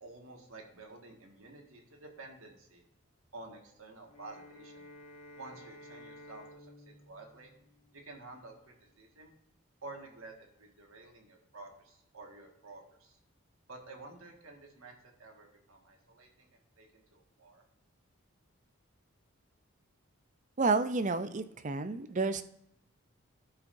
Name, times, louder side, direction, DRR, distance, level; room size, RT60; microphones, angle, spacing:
voice 1, 0.0-2.8 3.3-4.8 5.3-6.7 7.1-7.5 7.9-9.3 9.8-13.2 13.7-16.5 16.8-17.6, right 2 dB, 80° right, 2 dB, 1.8 m, -51 dB
Bowed string instrument, 4.0-8.4, left 1 dB, 75° left, 2.4 m, -54 dB
voice 2, 20.6-22.4, right 3 dB, 35° right, 12 dB, 0.5 m, -30 dB
16.0 x 5.6 x 2.6 m, 0.77 s
head